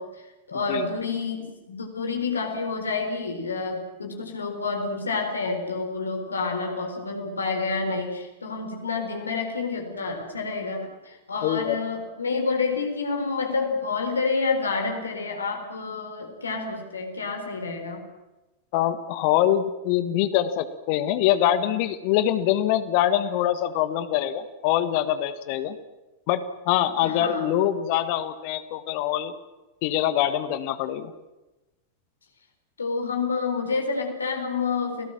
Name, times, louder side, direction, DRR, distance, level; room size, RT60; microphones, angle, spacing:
voice 1, 0.0-18.0 27.0-27.5 32.8-35.1, left 4 dB, 75° left, 3 dB, 4.3 m, -29 dB
voice 2, 11.4-11.8 18.7-25.8 26.3-26.4 26.6-29.3 29.8-31.1, left 11 dB, 45° left, 12 dB, 1.6 m, -24 dB
29.5 x 18.0 x 7.6 m, 1.1 s
figure-of-eight pair, 90°, 0 cm